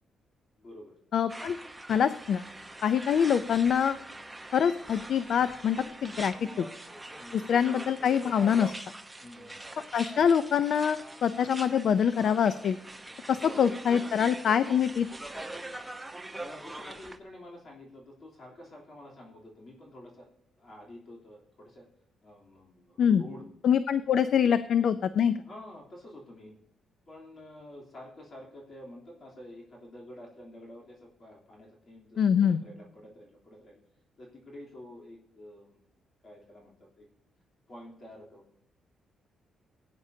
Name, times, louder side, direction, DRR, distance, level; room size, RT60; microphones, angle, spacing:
voice 1, 0.6-0.9 7.2-7.5 9.2-9.6 13.3-13.4 16.4-20.3 20.6-21.8 22.2-23.4 24.1-24.6 25.4-26.6 27.1-33.8 34.2-35.8 36.2-37.1 37.7-38.4, left 1 dB, 40° left, -2 dB, 3.2 m, -49 dB
voice 2, 1.1-1.6 1.9-2.4 2.8-4.0 4.5-6.7 7.3-8.7 9.9-12.8 13.3-15.1 23.0-23.2 23.6-25.4 32.2-32.6, left 8 dB, 60° left, 13 dB, 0.5 m, -25 dB
sound 1, 1.3-17.2, right 1 dB, 10° right, 0.9 m, -43 dB
19.0 x 9.5 x 2.7 m, 0.73 s
cardioid pair, 140°, 0 cm